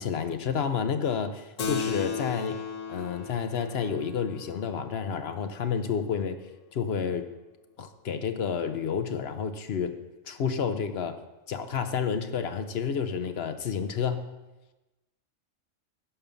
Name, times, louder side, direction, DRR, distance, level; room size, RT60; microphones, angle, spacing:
voice 1, 0.0-2.6 2.9-6.4 6.7-7.3 7.8-9.9 10.3-11.2 11.5-14.3, left 6 dB, 55° left, 8 dB, 1.0 m, -30 dB
Keyboard (musical), 1.6-6.5, left 6 dB, 80° left, 1.3 m, -36 dB
11.5 x 5.3 x 7.0 m, 1.1 s
omnidirectional pair, 1.3 m